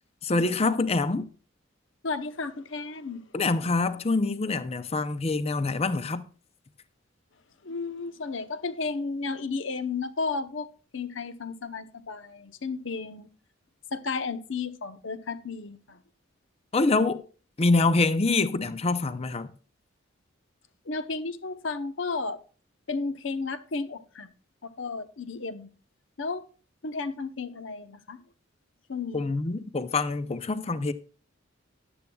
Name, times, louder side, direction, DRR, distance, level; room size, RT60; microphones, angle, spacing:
voice 1, 0.2-1.3 3.3-6.2 16.7-17.2 17.6-19.5 29.1-30.9, left 3 dB, 30° left, 0.5 m, -25 dB
voice 2, 2.0-3.2 7.6-10.7 10.9-13.3 13.9-16.0 20.8-22.4 22.9-24.3 24.6-25.7 26.2-26.4 26.8-28.2 28.9-29.3, left 4 dB, 65° left, 0.8 m, -33 dB
14.0 x 10.5 x 2.3 m
head